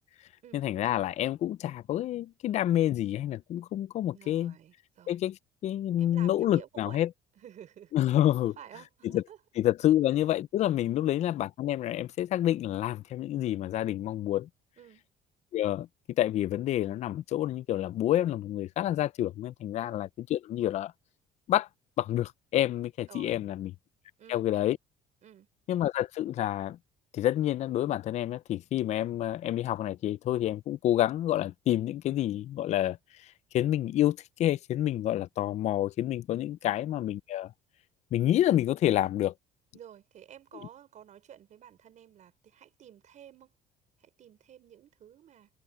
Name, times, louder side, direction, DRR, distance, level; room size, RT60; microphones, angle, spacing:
voice 1, 0.5-4.5 5.1-7.1 7.9-8.5 9.1-9.2 9.6-14.5 15.5-15.9 16.2-20.9 21.5-21.7 22.0-23.7 24.3-24.8 25.7-26.8 27.1-33.0 33.5-37.5 38.1-39.3, left 13 dB, 45° left, 0.4 m, -28 dB
voice 2, 4.1-5.2 6.0-7.1 7.4-7.9 8.6-9.4 14.8-15.1 19.8-20.0 23.1-23.5 24.2-24.7 25.2-25.5 36.6-36.7 39.7-43.5 44.0-45.5, right 10 dB, 45° right, 5.3 m, -51 dB
cardioid pair, 155°, 17 cm